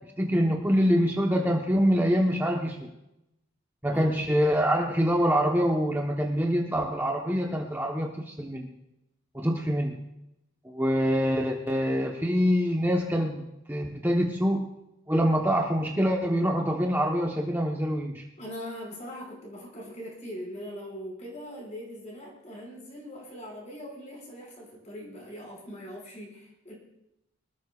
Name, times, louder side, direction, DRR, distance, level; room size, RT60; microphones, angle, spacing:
voice 1, 0.2-2.9 3.8-8.7 9.3-10.0 10.6-14.7 15.1-18.2, equal, 10° right, 0 dB, 1.0 m, -25 dB
voice 2, 18.4-26.7, equal, 35° left, -2 dB, 5.5 m, -41 dB
24.5 x 13.0 x 2.4 m, 0.87 s
head